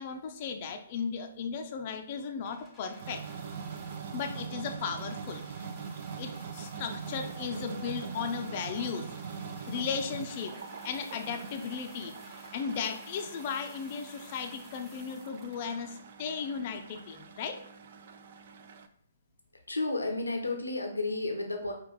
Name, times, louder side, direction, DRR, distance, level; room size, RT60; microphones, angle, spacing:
voice 1, 0.0-3.2 4.1-5.4 6.2-9.1 9.7-10.6 10.8-17.6, left 6 dB, 40° left, 5 dB, 0.5 m, -36 dB
sound 1, 2.4-16.1 16.9-17.0, left 1 dB, ahead, 0.9 m, -55 dB
sound 2, 3.0-18.9, right 6 dB, 50° right, 0.4 m, -42 dB
voice 2, 19.7-21.7, left 2 dB, 85° left, 3 dB, 0.7 m, -32 dB
5.2 x 2.4 x 3.9 m, 0.69 s
figure-of-eight pair, 125°, 0 cm